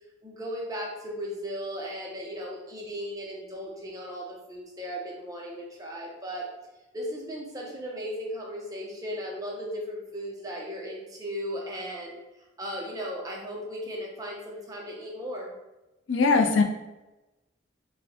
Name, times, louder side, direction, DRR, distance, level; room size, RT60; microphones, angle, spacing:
voice 1, 0.2-6.5 6.9-12.2 12.6-15.5, equal, 20° right, -2 dB, 0.7 m, -36 dB
voice 2, 16.1-16.6, left 4 dB, 80° left, 4 dB, 0.5 m, -20 dB
4.3 x 2.2 x 2.8 m, 1.0 s
head